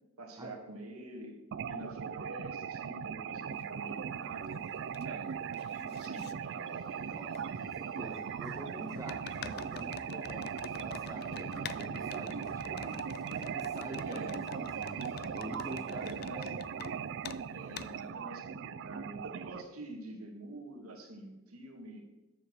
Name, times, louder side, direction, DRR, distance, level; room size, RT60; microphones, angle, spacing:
voice 1, 0.2-1.4 1.7-4.6 5.0-7.2 12.7-13.5 14.0-14.4 15.6-16.5 17.5-22.0, right 2 dB, 90° right, 1 dB, 2.0 m, -47 dB
sound 1, 1.5-19.6, right 7 dB, 60° right, 0.4 m, -39 dB
Organ, 3.1-16.3, left 1 dB, 20° left, 1.8 m, -61 dB
sound 2, 3.6-3.7 4.2-5.1 5.3-6.3 7.3-7.4 9.1-16.9 17.2-17.4 17.8-17.9, left 8 dB, 45° left, 0.4 m, -47 dB
voice 2, 7.1-13.0 13.5-16.0 16.3-17.1, right 1 dB, 15° right, 2 dB, 0.8 m, -46 dB
7.3 x 6.7 x 6.7 m, 1.0 s
head